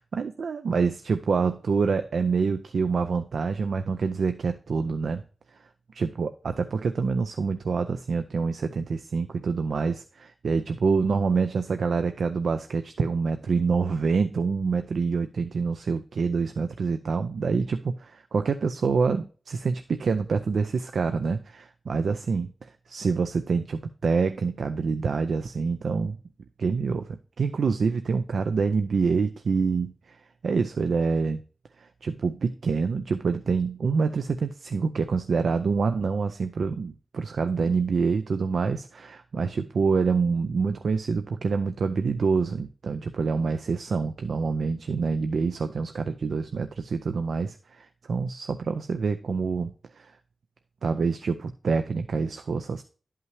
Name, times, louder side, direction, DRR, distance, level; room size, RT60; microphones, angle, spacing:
voice 1, 0.0-5.2 6.0-26.2 26.6-30.2 30.4-31.4 31.8-50.1 50.8-52.8, right 5 dB, 85° right, 9 dB, 0.4 m, -26 dB
10.5 x 5.5 x 3.2 m, 0.39 s
cardioid pair, 45°, 0 cm